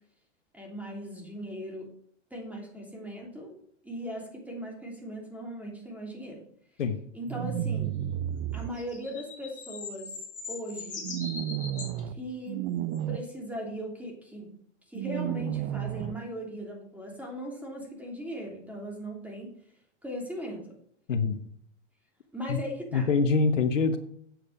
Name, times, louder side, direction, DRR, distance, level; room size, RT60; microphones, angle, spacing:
voice 1, 0.5-1.9 2.3-3.6 3.8-6.4 7.1-7.9 8.5-10.1 10.5-11.1 12.1-12.6 13.1-14.5 14.9-19.5 20.0-20.7 22.3-23.1, equal, 5° right, -1 dB, 3.1 m, -38 dB
sound 1, 7.3-8.7 11.0-12.1 12.5-13.2 14.9-16.1, right 11 dB, 40° right, 0.6 m, -32 dB
sound 2, 8.6-12.0 12.9-13.0, left 4 dB, 20° left, 4.5 m, -40 dB
voice 2, 21.1-21.4 22.5-22.6 22.9-24.0, left 4 dB, 90° left, 9 dB, 1.2 m, -24 dB
8.5 x 7.8 x 5.0 m, 0.64 s
hypercardioid pair, 115°, 36 cm